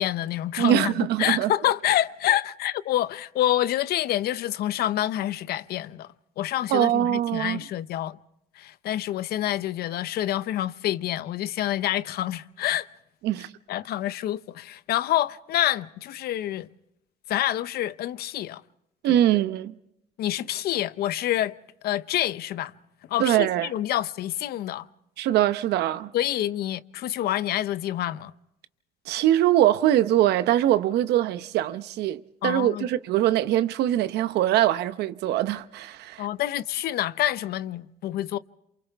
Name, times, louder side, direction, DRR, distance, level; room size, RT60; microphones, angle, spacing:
voice 1, 0.0-6.1 6.4-8.2 8.6-12.9 13.7-16.7 17.3-18.6 19.1-19.2 20.2-21.5 21.8-22.7 23.1-24.9 26.1-28.3 32.4-32.9 36.2-38.4, left 13 dB, 70° left, 0.7 m, -27 dB
voice 2, 0.6-1.5 6.7-7.6 13.2-13.5 19.0-19.7 23.2-23.7 25.2-26.1 29.1-36.3, right 12 dB, 80° right, 0.9 m, -23 dB
28.0 x 28.0 x 3.5 m
cardioid pair, 110°, 17 cm